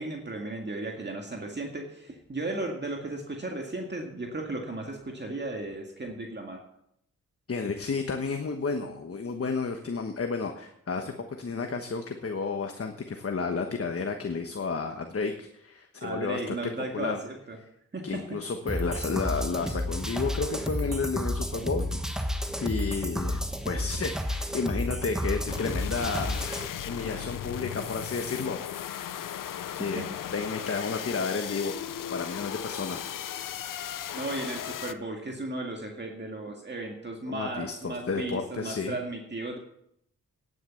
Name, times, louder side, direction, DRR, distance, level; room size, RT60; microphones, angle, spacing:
voice 1, 0.0-6.6 16.0-17.6 17.9-18.4 29.9-30.0 34.1-39.6, right 2 dB, 35° right, 1 dB, 2.1 m, -35 dB
voice 2, 7.5-17.2 18.0-22.3 22.6-28.6 29.7-31.8 32.1-33.1 37.3-39.0, left 4 dB, 45° left, 5 dB, 1.2 m, -32 dB
sound 1, 18.7-26.7, left 1 dB, ahead, 1.3 m, -31 dB
sound 2, 25.5-34.9, left 10 dB, 90° left, 0.7 m, -36 dB
10.0 x 9.5 x 7.2 m, 0.75 s
cardioid pair, 70°, 32 cm